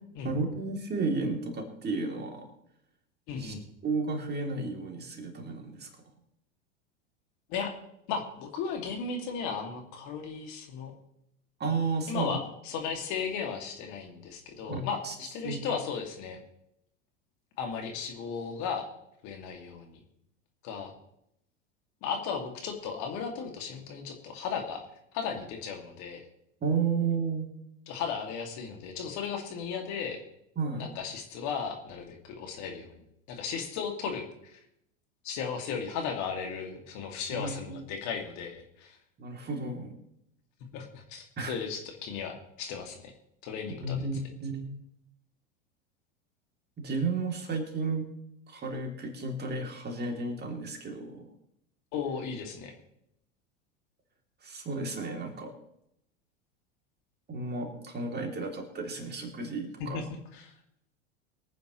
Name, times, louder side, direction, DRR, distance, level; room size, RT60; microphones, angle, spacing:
voice 1, 0.2-2.5 3.4-3.5 3.8-5.9 11.6-12.4 14.7-15.1 15.4-15.6 26.6-27.5 30.6-30.9 37.3-37.8 39.2-39.9 41.4-41.5 43.8-44.7 46.8-48.1 48.5-51.3 54.4-55.5 57.3-60.0, right 4 dB, 25° right, 2 dB, 3.0 m, -32 dB
voice 2, 3.3-3.6 7.5-7.7 8.1-10.9 12.1-16.4 17.6-18.9 19.2-20.0 20.6-20.9 22.0-24.9 25.1-26.2 27.9-30.2 30.8-33.0 33.3-34.6 35.2-39.0 40.7-43.1 43.4-44.0 51.9-52.8 59.8-60.5, left 6 dB, 50° left, 3 dB, 2.5 m, -35 dB
23.0 x 9.3 x 3.2 m, 0.78 s
hypercardioid pair, 85°, 37 cm